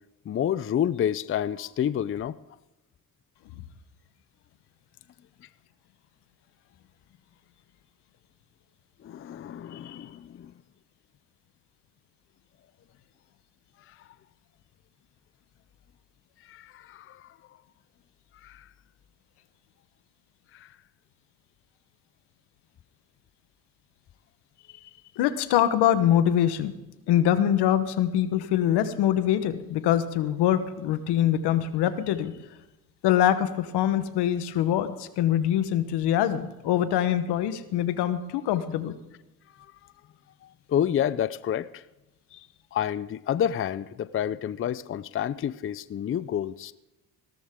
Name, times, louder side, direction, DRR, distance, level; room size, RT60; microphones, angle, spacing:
voice 1, 0.3-2.4 9.0-10.5 13.9-14.0 16.4-17.3 18.4-18.7 20.5-20.7 40.4-41.8 42.3-46.7, left 10 dB, 35° left, 16 dB, 0.5 m, -29 dB
voice 2, 25.2-26.7 27.1-32.3 33.0-39.0, left 11 dB, 85° left, 11 dB, 1.2 m, -24 dB
17.0 x 13.5 x 3.7 m, 1.0 s
cardioid pair, 90°, 39 cm